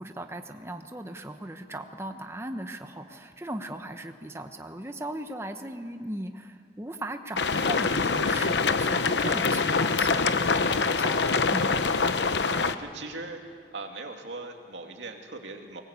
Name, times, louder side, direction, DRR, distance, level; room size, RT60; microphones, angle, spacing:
voice 1, 0.0-11.8, right 1 dB, 15° right, 6 dB, 1.0 m, -38 dB
sound 1, 7.4-12.7, left 4 dB, 85° left, 0.9 m, -25 dB
voice 2, 9.1-9.8 12.4-13.4 13.7-15.8, right 3 dB, 90° right, 3 dB, 2.6 m, -40 dB
23.0 x 19.5 x 8.4 m, 2.2 s
head